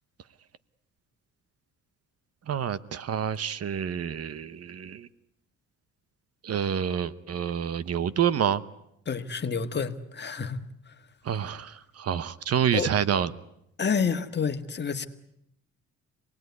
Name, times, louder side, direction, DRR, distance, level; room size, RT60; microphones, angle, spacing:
voice 1, 2.5-5.1 6.4-8.6 11.2-13.3, right 8 dB, 55° right, 1.0 m, -28 dB
voice 2, 9.1-10.6 12.7-12.9 13.8-15.1, left 6 dB, 35° left, 1.7 m, -29 dB
26.5 x 19.0 x 9.5 m
cardioid pair, 90°, 30 cm